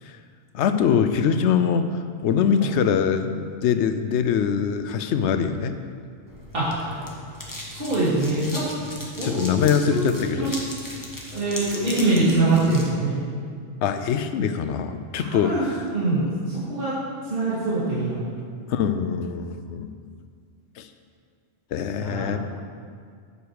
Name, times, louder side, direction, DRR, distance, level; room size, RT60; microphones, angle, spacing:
voice 1, 0.5-1.9 2.2-5.8 9.2-10.5 13.8-15.8 18.7-19.9 20.8-20.9 21.7-22.4, left 7 dB, 75° left, 9 dB, 0.9 m, -23 dB
sound 1, 6.3-12.9, left 2 dB, 15° left, 1.3 m, -38 dB
voice 2, 6.5-6.9 7.7-8.7 9.2-9.5 9.9-10.5 11.3-13.2 15.2-15.6 15.9-16.9 17.3-18.2 22.0-22.4, right 2 dB, 55° right, -10 dB, 2.3 m, -24 dB
8.2 x 8.1 x 4.7 m, 2.1 s
omnidirectional pair, 1.2 m